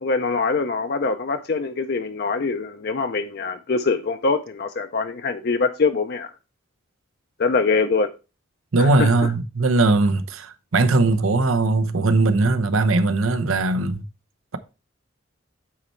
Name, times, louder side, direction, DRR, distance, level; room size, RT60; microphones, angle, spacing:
voice 1, 0.0-6.3 7.4-8.1 8.8-9.1, left 4 dB, 50° left, 0.5 m, -23 dB
voice 2, 8.7-14.0, right 3 dB, 85° right, 0.8 m, -19 dB
8.6 x 4.2 x 4.4 m
head